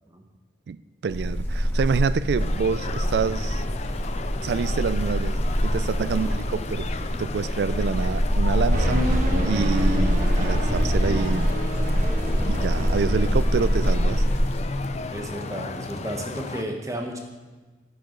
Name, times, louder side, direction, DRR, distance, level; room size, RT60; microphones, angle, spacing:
voice 1, 0.7-3.6 4.4-9.0 9.4-11.6 12.5-14.2, right 5 dB, 65° right, 16 dB, 0.3 m, -27 dB
sound 1, 1.1-14.6, equal, 15° left, 1.5 m, -24 dB
sound 2, 2.4-16.6, left 3 dB, 40° left, 0.4 m, -34 dB
voice 2, 6.1-6.4 15.1-17.2, right 1 dB, 20° right, 3 dB, 0.9 m, -33 dB
sound 3, 8.7-14.2, equal, 45° right, 1.4 m, -28 dB
10.0 x 8.1 x 3.8 m, 1.3 s
head